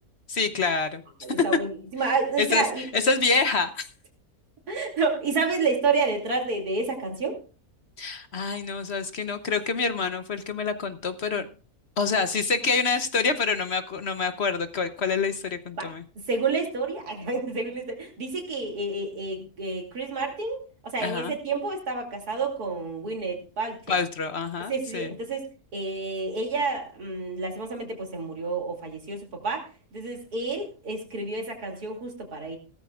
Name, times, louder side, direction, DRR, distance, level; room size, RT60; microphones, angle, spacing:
voice 1, 0.3-1.0 2.4-3.9 8.0-11.4 12.0-16.0 21.0-21.3 23.9-25.1, left 4 dB, 50° left, 10 dB, 1.0 m, -27 dB
voice 2, 1.2-2.8 4.7-7.4 15.8-15.9 16.3-23.9 24.7-25.5 25.7-29.6 29.9-32.6, right 4 dB, 85° right, 2 dB, 3.2 m, -29 dB
16.5 x 13.5 x 2.4 m, 0.35 s
omnidirectional pair, 1.6 m